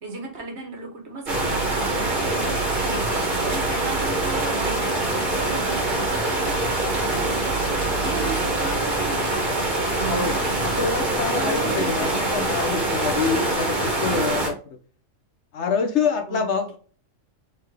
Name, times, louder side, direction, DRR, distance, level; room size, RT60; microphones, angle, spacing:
voice 1, 0.0-7.6 7.9-10.8 11.3-12.1 14.0-14.6 16.3-16.5, right 3 dB, 60° right, 2 dB, 1.5 m, -36 dB
sound 1, 1.3-14.5, right 2 dB, 40° right, 1.4 m, -24 dB
voice 2, 10.8-14.5 15.5-16.8, left 5 dB, 65° left, 5 dB, 1.1 m, -26 dB
4.1 x 3.8 x 3.4 m, 0.39 s
omnidirectional pair, 1.3 m